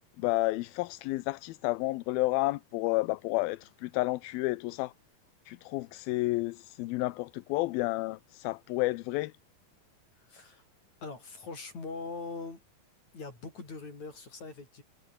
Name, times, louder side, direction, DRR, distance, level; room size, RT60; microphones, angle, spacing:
voice 1, 0.2-4.9 5.5-9.3, left 19 dB, 80° left, 2.5 m, -31 dB
voice 2, 10.2-10.6 11.0-12.6 13.1-14.8, left 3 dB, 45° left, 8.2 m, -42 dB
omnidirectional pair, 4.4 m